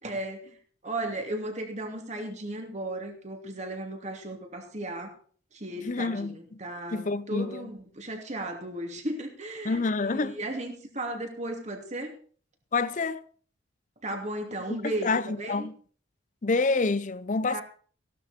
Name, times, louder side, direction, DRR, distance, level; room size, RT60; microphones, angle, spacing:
voice 1, 0.0-0.6 0.8-5.2 5.5-9.8 10.1-12.1 14.0-15.7 17.5-17.6, right 1 dB, 35° right, 2.7 m, -35 dB
voice 2, 5.8-6.6 6.9-7.7 9.6-10.4 12.7-13.2 14.7-15.7 16.4-17.6, left 3 dB, 40° left, 0.6 m, -28 dB
16.0 x 12.0 x 4.3 m
head